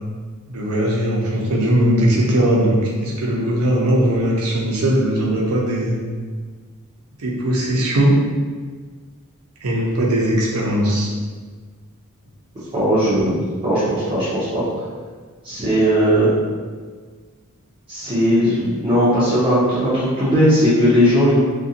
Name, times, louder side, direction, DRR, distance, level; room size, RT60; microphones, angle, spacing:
voice 1, 0.5-6.0 7.2-8.1 9.6-11.1, right 1 dB, 75° right, -3 dB, 0.6 m, -19 dB
voice 2, 12.7-13.3 13.6-14.6 15.4-16.3 17.9-21.3, equal, 25° right, -12 dB, 0.6 m, -17 dB
2.5 x 2.2 x 2.7 m, 1.5 s
head